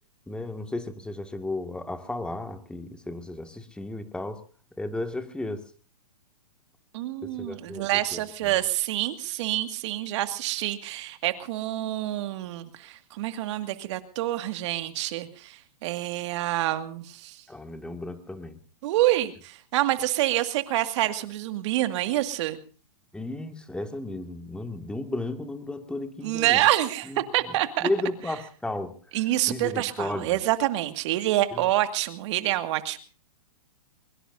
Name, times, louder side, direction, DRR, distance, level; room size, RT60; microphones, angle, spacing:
voice 1, 0.3-4.4 4.8-5.6 7.2-7.8 8.1-8.5 17.5-18.6 23.1-26.6 27.0-27.5 27.8-29.2 29.5-30.4 31.5-31.6, left 2 dB, 5° left, 6 dB, 2.0 m, -34 dB
voice 2, 6.9-17.4 18.8-22.6 26.2-27.9 29.1-33.0, right 15 dB, 50° right, 8 dB, 2.1 m, -27 dB
23.5 x 23.0 x 2.7 m, 0.39 s
hypercardioid pair, 125°, 19 cm